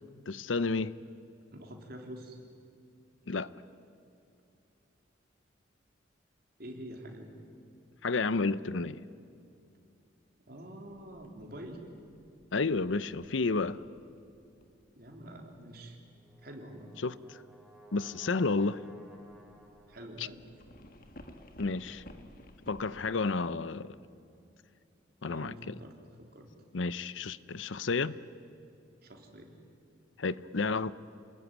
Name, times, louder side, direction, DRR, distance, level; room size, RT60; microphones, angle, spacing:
voice 1, 0.3-0.9 3.3-3.5 8.0-9.0 12.5-13.8 17.0-17.4 17.9-18.8 20.2-20.3 21.6-22.0 22.7-24.0 25.2-25.8 26.7-28.2 30.2-30.9, left 3 dB, 80° left, 0.7 m, -31 dB
voice 2, 1.5-2.4 6.6-7.3 10.5-11.8 15.0-16.0 16.4-16.9 19.9-20.4 25.2-26.5 29.0-29.6, right 1 dB, 55° right, 3.7 m, -46 dB
sound 1, 10.9-15.8 16.3-16.5 18.8-23.2, left 1 dB, 50° left, 1.7 m, -55 dB
Brass instrument, 16.1-20.3, right 2 dB, ahead, 3.1 m, -57 dB
28.0 x 20.0 x 9.6 m
head